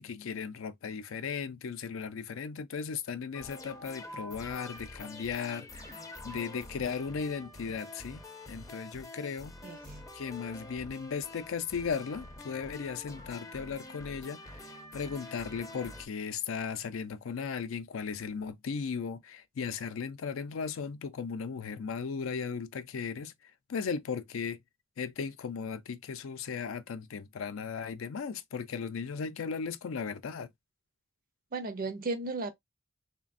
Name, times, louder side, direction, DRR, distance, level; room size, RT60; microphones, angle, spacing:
voice 1, 0.0-6.0 6.2-8.2 8.5-9.5 10.1-23.3 23.7-24.6 25.0-30.5, left 6 dB, 75° left, 0.4 m, -36 dB
sound 1, 3.3-16.1, left 2 dB, 15° left, 0.5 m, -47 dB
voice 2, 9.6-10.0 31.5-32.5, right 3 dB, 45° right, 0.5 m, -35 dB
3.2 x 2.2 x 2.4 m
head